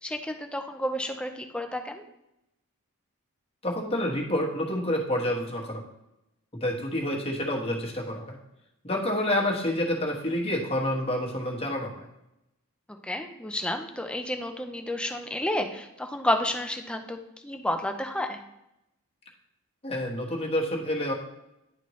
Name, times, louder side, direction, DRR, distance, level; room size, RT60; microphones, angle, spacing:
voice 1, 0.0-2.0 13.0-18.4, left 1 dB, 5° left, 5 dB, 0.5 m, -31 dB
voice 2, 3.6-5.8 6.6-8.4 8.8-12.1 19.8-21.1, left 1 dB, 25° left, -1 dB, 1.3 m, -28 dB
10.5 x 4.3 x 3.1 m, 0.86 s
head